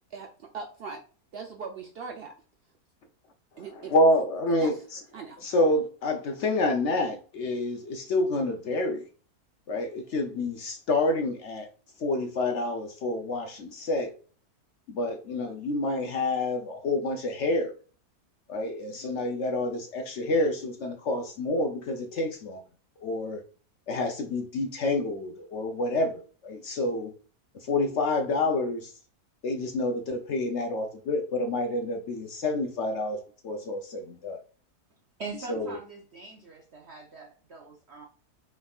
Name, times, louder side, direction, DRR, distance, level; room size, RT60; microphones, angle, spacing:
voice 1, 0.1-1.0 1.3-2.3 3.6-3.9 4.6-4.7 5.1-5.4, right 5 dB, 90° right, 0.5 m, -39 dB
voice 2, 3.6-5.0 5.4-9.0 9.7-11.7 12.0-14.1 14.9-17.7 18.5-22.6 23.0-23.4 23.9-27.1 27.6-28.9 29.4-34.4 35.5-35.8, left 2 dB, 65° left, 0.7 m, -28 dB
voice 3, 35.2-38.1, right 4 dB, 55° right, 0.8 m, -42 dB
5.4 x 3.6 x 2.3 m
omnidirectional pair, 1.6 m